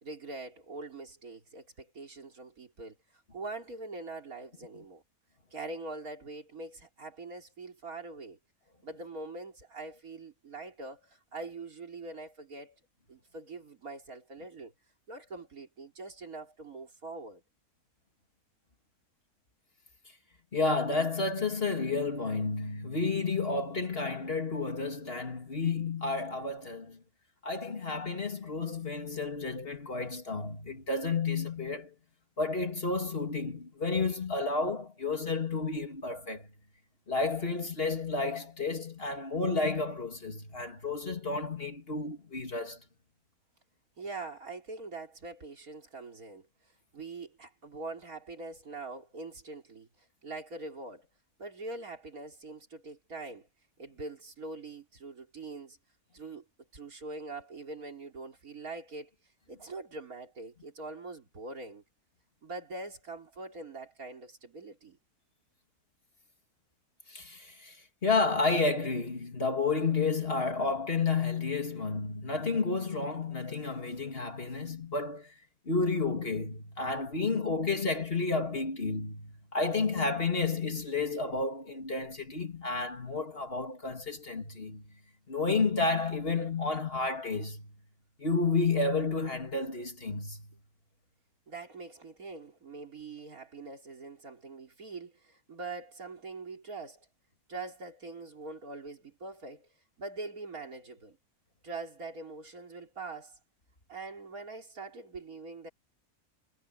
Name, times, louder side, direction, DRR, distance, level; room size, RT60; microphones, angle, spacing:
voice 1, 0.0-5.0 5.5-8.4 8.8-12.8 13.1-14.7 15.1-17.4 44.0-46.5 46.9-51.1 51.4-53.5 53.8-55.8 56.1-56.5 56.7-59.1 59.5-61.8 62.4-65.0 91.5-97.1 97.5-99.7 100.0-101.2 101.6-103.4 103.9-105.7, right 3 dB, 70° right, 3.9 m, -43 dB
voice 2, 20.5-27.0 27.4-31.9 32.4-36.5 37.1-42.8 67.1-67.8 68.0-75.3 75.7-84.9 85.3-87.7 88.2-90.5, left 3 dB, 40° left, 2.6 m, -31 dB
omnidirectional pair, 1.6 m